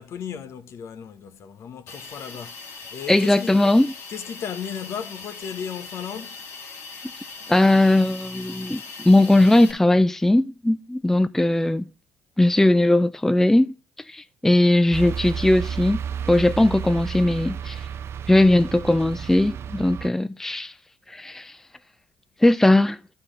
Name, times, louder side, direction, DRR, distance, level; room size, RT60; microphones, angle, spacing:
voice 1, 0.0-2.6 2.9-3.6 4.1-6.4, left 8 dB, 60° left, 1.0 m, -35 dB
Hiss, 1.9-9.7, left 4 dB, 75° left, 2.2 m, -40 dB
voice 2, 3.1-3.9 7.5-11.8 12.4-13.7 14.1-16.0 16.3-17.9 18.3-20.7 21.1-21.5 22.4-23.0, left 1 dB, 5° left, 0.4 m, -19 dB
sound 1, 14.9-20.1, right 8 dB, 55° right, 0.5 m, -32 dB
11.5 x 4.4 x 4.9 m
supercardioid pair, 60°, 5 cm